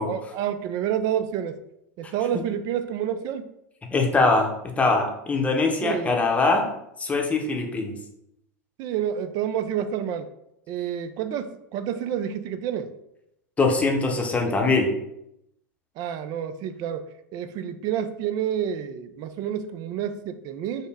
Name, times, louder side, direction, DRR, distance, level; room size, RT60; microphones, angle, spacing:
voice 1, 0.0-1.6 2.0-3.5 5.8-6.2 8.8-10.3 10.7-12.9 16.0-20.9, right 9 dB, 40° right, 11 dB, 0.4 m, -29 dB
voice 2, 3.9-6.7 7.0-7.9 13.6-14.9, left 3 dB, 15° left, 2 dB, 0.8 m, -22 dB
5.3 x 2.1 x 3.4 m, 0.82 s
hypercardioid pair, 95°, 9 cm